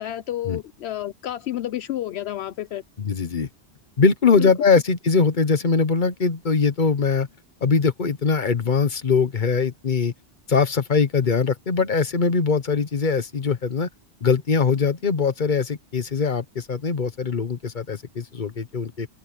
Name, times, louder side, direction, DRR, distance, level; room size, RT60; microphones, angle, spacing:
voice 1, 0.0-2.8 4.4-4.5, left 13 dB, 75° left, 0.9 m, -30 dB
voice 2, 3.0-3.5 4.0-7.3 7.6-10.1 10.5-13.9 14.2-19.1, left 5 dB, 45° left, 1.2 m, -21 dB
open air
omnidirectional pair, 1.1 m